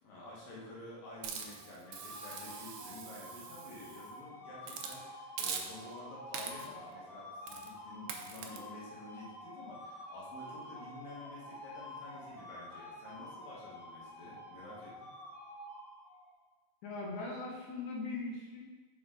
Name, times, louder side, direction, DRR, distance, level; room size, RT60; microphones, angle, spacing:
voice 1, 0.0-15.1, left 2 dB, 90° left, -5 dB, 3.4 m, -50 dB
sound 1, 1.1-16.4, left 1 dB, 35° left, 2.0 m, -49 dB
Hiss, 1.2-4.1 4.6-5.0 5.4-6.0 6.3-6.8 7.5-7.7 8.1-8.6, right 7 dB, 75° right, 1.8 m, -43 dB
voice 2, 16.8-18.6, left 3 dB, 65° left, -3 dB, 2.5 m, -40 dB
6.9 x 6.1 x 3.8 m, 1.3 s
omnidirectional pair, 3.9 m